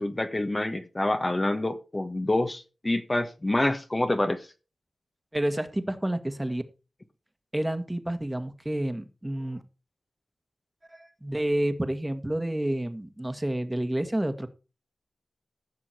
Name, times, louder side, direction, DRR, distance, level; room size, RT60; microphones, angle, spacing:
voice 1, 0.0-4.5, left 1 dB, 25° left, 1.4 m, -27 dB
voice 2, 5.3-6.6 7.5-9.6 10.9-14.5, right 1 dB, 15° right, 1.7 m, -29 dB
15.0 x 6.3 x 4.5 m
cardioid pair, 50°, 0 cm